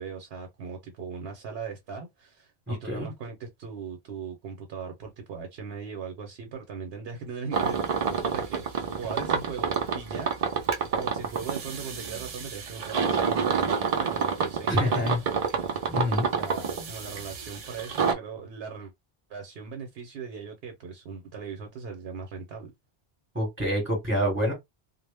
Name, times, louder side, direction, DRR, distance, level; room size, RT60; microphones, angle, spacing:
voice 1, 0.0-7.8 8.2-15.1 16.3-18.9 19.3-22.7, right 5 dB, 75° right, 0.9 m, -39 dB
voice 2, 2.7-3.1 14.7-15.2 15.9-16.3 23.3-24.5, equal, 10° right, 1.0 m, -27 dB
sound 1, 7.5-18.1, right 5 dB, 55° right, 0.4 m, -28 dB
2.1 x 2.0 x 3.3 m
omnidirectional pair, 1.1 m